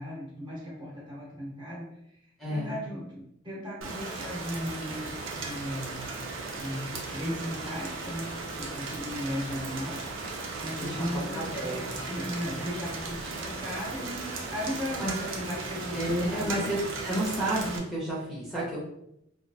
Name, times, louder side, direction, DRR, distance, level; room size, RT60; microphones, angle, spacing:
voice 1, 0.0-1.9 2.5-6.1 6.5-10.1 10.3-11.4 11.7-16.5, equal, 25° right, -5 dB, 1.0 m, -37 dB
voice 2, 2.4-2.8 10.8-12.0 15.0-15.1 15.9-18.8, right 1 dB, ahead, -8 dB, 0.6 m, -31 dB
Rain, 3.8-17.8, right 3 dB, 75° right, 0.5 m, -37 dB
3.0 x 2.3 x 2.6 m, 0.78 s
head